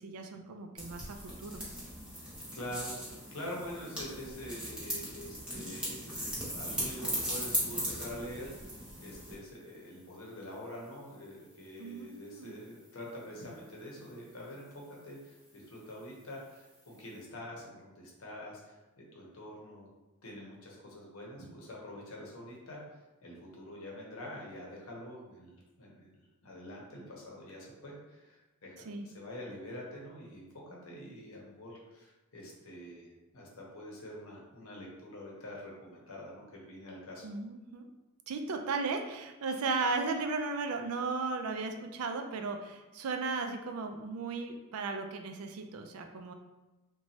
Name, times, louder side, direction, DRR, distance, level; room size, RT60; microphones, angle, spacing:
voice 1, 0.0-1.6 11.8-12.5 28.9-29.1 37.2-37.9 38.3-46.3, right 4 dB, 85° right, 5 dB, 0.4 m, -36 dB
sound 1, 0.8-9.4, equal, 5° right, 0.7 m, -38 dB
voice 2, 2.5-19.9 20.2-22.8 23.2-37.2, left 1 dB, 70° left, -3 dB, 0.8 m, -46 dB
2.9 x 2.2 x 2.7 m, 1.1 s
head